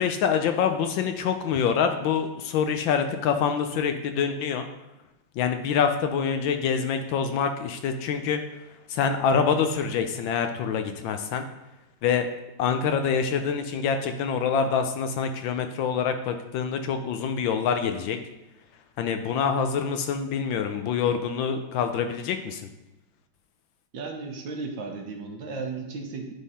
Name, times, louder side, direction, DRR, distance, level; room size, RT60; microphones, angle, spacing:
voice 1, 0.0-4.7 5.4-8.4 8.9-11.5 12.0-12.3 12.6-18.2 19.0-22.6, left 6 dB, 75° left, 7 dB, 1.2 m, -26 dB
voice 2, 23.9-26.3, right 4 dB, 65° right, 2 dB, 1.5 m, -35 dB
9.8 x 3.7 x 4.1 m, 0.97 s
omnidirectional pair, 2.3 m